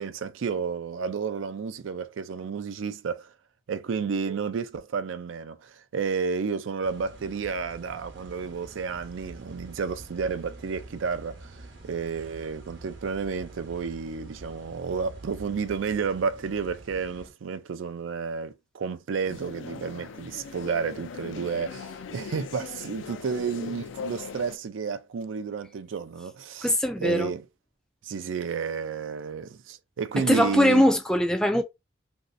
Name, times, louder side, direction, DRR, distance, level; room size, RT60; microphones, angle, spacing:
voice 1, 0.0-3.3 3.7-11.6 11.8-26.7 27.0-27.4 28.0-30.8, right 5 dB, 85° right, 0.4 m, -31 dB
sound 1, 6.8-17.3, right 2 dB, 65° right, 0.9 m, -46 dB
sound 2, 19.2-24.6, left 5 dB, 80° left, 0.4 m, -40 dB
voice 2, 26.6-27.3 30.2-31.6, equal, 5° left, 0.3 m, -21 dB
3.0 x 2.6 x 2.5 m
head